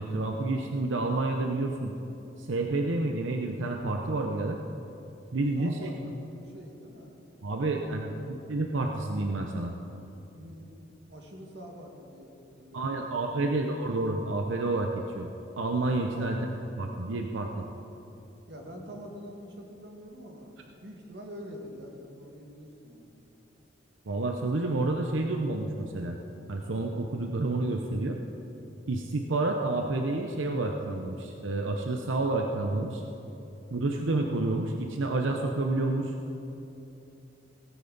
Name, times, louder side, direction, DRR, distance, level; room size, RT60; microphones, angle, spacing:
voice 1, 0.0-1.9 2.4-4.6 5.3-5.9 7.4-9.7 12.7-15.3 15.6-16.4 16.8-17.6 24.1-26.2 26.5-28.2 28.9-33.0 33.7-36.1, right 2 dB, 90° right, 2 dB, 0.7 m, -29 dB
voice 2, 5.6-7.2 7.6-8.2 10.3-13.6 16.2-16.3 18.5-23.1, equal, 60° right, 1 dB, 1.8 m, -46 dB
17.5 x 9.5 x 4.0 m, 2.9 s
head